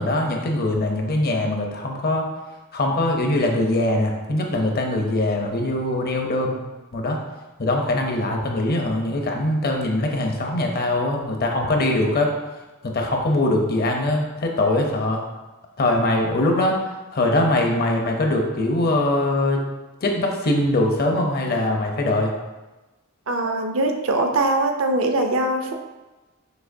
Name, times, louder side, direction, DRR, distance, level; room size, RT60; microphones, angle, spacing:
voice 1, 0.0-2.3 2.7-6.6 6.9-7.2 7.6-12.3 12.8-15.2 15.8-16.8 17.1-19.6 20.0-22.3, left 1 dB, 45° left, 2 dB, 0.6 m, -22 dB
voice 2, 23.3-25.7, right 2 dB, 70° right, 4 dB, 0.5 m, -22 dB
6.1 x 2.9 x 2.6 m, 1.1 s
head